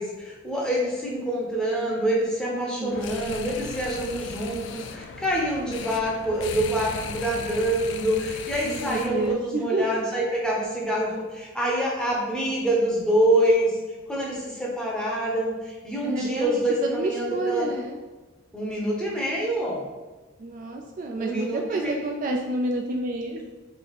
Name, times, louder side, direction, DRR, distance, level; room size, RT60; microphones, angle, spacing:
voice 1, 0.0-13.8 14.1-17.7 18.5-19.8 21.2-22.0, right 1 dB, 5° left, -4 dB, 0.8 m, -26 dB
voice 2, 2.5-3.1 8.6-9.8 16.0-18.0 20.4-23.5, right 2 dB, 40° right, 1 dB, 0.3 m, -29 dB
sound 1, 2.9-9.4, left 5 dB, 65° left, 0.3 m, -37 dB
3.3 x 2.8 x 4.0 m, 1.2 s
head